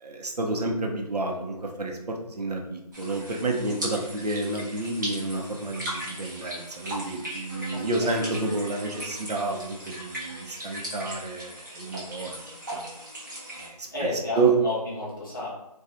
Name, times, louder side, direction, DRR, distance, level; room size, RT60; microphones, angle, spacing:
voice 1, 0.0-12.3 12.7-13.0 13.5-14.1 14.4-14.5, right 3 dB, 75° right, 1 dB, 0.6 m, -30 dB
sound 1, 2.9-13.7, right 1 dB, 30° right, 0.7 m, -38 dB
voice 2, 3.5-3.8 7.7-8.3 13.9-15.5, left 2 dB, 35° left, -7 dB, 0.9 m, -32 dB
2.5 x 2.3 x 2.6 m, 0.83 s
figure-of-eight pair, 165°, 20 cm